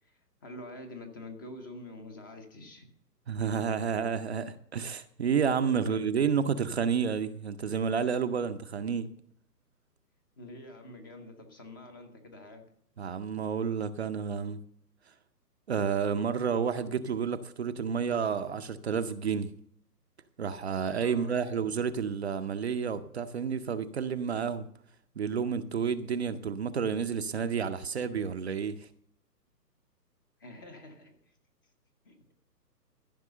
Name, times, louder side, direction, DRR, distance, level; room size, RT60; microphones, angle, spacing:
voice 1, 0.0-2.9 5.5-6.0 10.4-12.6 21.0-21.3 30.4-31.4 32.0-32.3, left 1 dB, 15° left, 0.6 m, -47 dB
voice 2, 3.3-9.1 13.0-14.6 15.7-19.5 20.4-24.7 25.2-28.9, right 6 dB, 40° right, 0.6 m, -30 dB
14.0 x 6.0 x 6.7 m
hypercardioid pair, 140°, 50 cm